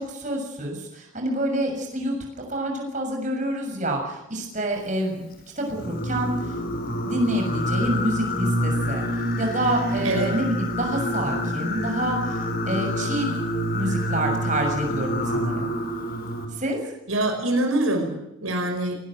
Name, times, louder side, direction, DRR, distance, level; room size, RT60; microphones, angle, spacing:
voice 1, 0.0-2.2 2.5-6.5 7.0-9.0 9.4-13.4 13.7-15.7 16.5-16.8, right 1 dB, 35° right, 1 dB, 6.8 m, -27 dB
Singing, 5.7-16.5, equal, 45° left, 4.8 m, -27 dB
voice 2, 10.0-10.4 17.1-18.9, right 1 dB, 85° right, 4 dB, 5.3 m, -24 dB
21.5 x 19.5 x 9.2 m, 0.89 s
head